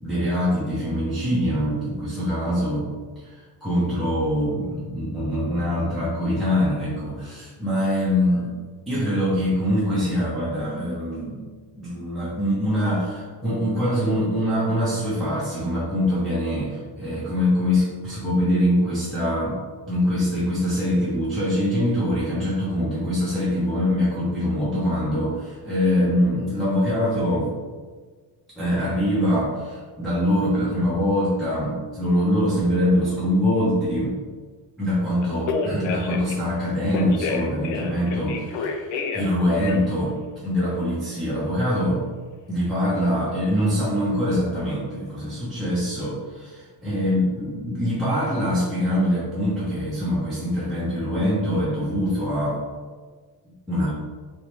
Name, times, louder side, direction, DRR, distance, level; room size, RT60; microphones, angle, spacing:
voice 1, 0.0-2.9 3.2-8.5 8.9-11.4 11.8-19.6 19.9-27.5 28.6-34.2 34.8-40.1 40.4-42.0 42.5-52.6 53.7-54.0, equal, ahead, -10 dB, 0.6 m, -24 dB
Telephone, 35.2-36.3 36.9-39.3 39.6-40.0, left 4 dB, 80° left, 0.6 m, -28 dB
3.3 x 3.0 x 3.0 m, 1.5 s
cardioid pair, 160°, 44 cm